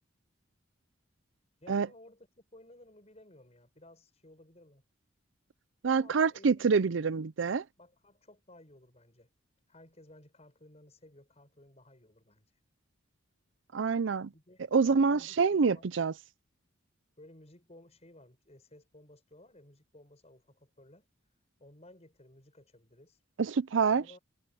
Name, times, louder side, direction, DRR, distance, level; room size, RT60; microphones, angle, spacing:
voice 1, 1.6-4.8 5.9-7.1 7.8-9.3 9.7-12.5 14.3-15.9 17.2-21.1 21.6-23.2 23.9-24.2, left 1 dB, 35° left, 6.7 m, -57 dB
voice 2, 5.8-7.6 13.7-14.3 14.7-16.1 23.4-24.0, right 5 dB, 70° right, 0.5 m, -26 dB
head